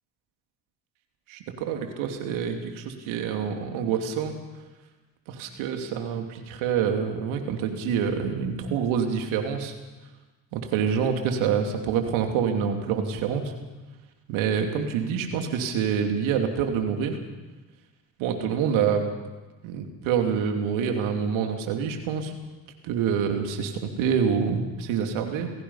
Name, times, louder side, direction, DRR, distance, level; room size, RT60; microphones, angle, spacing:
voice 1, 1.3-4.3 5.3-9.7 10.5-13.4 14.3-17.2 18.2-19.0 19.6-22.3 22.8-25.5, right 7 dB, 75° right, 4 dB, 2.9 m, -26 dB
28.0 x 16.5 x 5.7 m, 1.2 s
hypercardioid pair, 60°, 48 cm